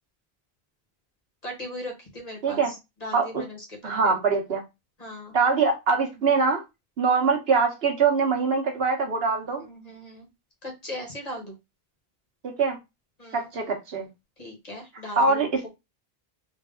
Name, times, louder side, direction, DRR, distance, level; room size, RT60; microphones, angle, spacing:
voice 1, 1.4-4.2 5.0-5.3 6.1-6.2 9.5-10.3 10.6-11.5 13.2-13.6 14.4-15.5, left 1 dB, 40° left, 1.4 m, -38 dB
voice 2, 3.8-4.6 5.3-6.6 7.0-9.6 12.4-12.8 13.3-14.1 15.2-15.7, right 4 dB, 75° right, 1.3 m, -23 dB
3.9 x 2.4 x 3.7 m
omnidirectional pair, 1.0 m